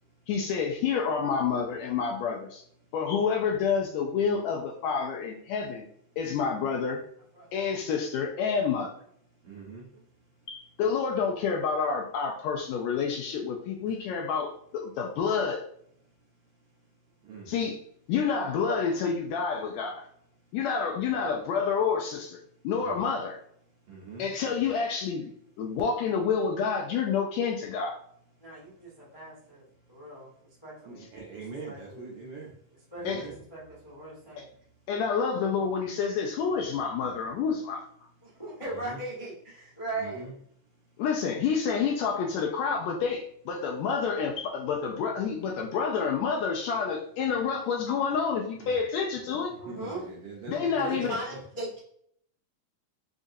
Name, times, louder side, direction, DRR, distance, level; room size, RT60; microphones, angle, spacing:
voice 1, 0.3-2.6 2.9-5.9 6.2-7.0 7.5-8.9 10.5-15.6 17.5-17.8 18.1-20.1 20.5-23.4 24.2-28.0 31.0-31.1 33.0-33.3 34.4-34.5 34.9-37.8 41.0-49.5 50.5-51.2, left 6 dB, 80° left, 1 dB, 1.7 m, -28 dB
voice 2, 9.4-9.9 17.2-17.5 22.8-23.0 23.9-24.2 30.8-32.5 33.0-33.3 38.7-39.0 40.0-40.3 48.6-48.7 49.7-51.4, right 4 dB, 90° right, -3 dB, 1.2 m, -42 dB
voice 3, 28.4-30.3 30.6-31.1 31.3-31.4 31.7-32.1 32.9-33.2 33.5-34.4 38.2-40.3 49.6-50.1 50.8-51.8, right 2 dB, 20° left, -9 dB, 0.7 m, -39 dB
5.1 x 2.4 x 2.6 m, 0.65 s
omnidirectional pair, 3.4 m